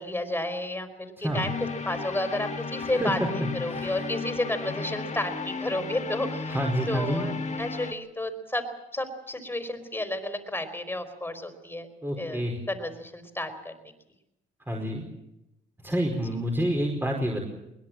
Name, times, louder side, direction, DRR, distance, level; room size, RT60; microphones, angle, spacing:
voice 1, 0.0-1.6 1.8-6.6 6.9-8.6 8.9-11.9 12.2-13.9, left 1 dB, 10° left, 9 dB, 4.5 m, -32 dB
sound 1, 1.3-7.9, left 4 dB, 35° left, 1.8 m, -34 dB
voice 2, 2.9-3.3 3.7-3.9 6.5-7.3 12.0-12.6 14.7-15.0 15.8-17.4, equal, 10° right, 1 dB, 5.0 m, -28 dB
21.5 x 21.5 x 7.6 m, 0.88 s
cardioid pair, 90°, 20 cm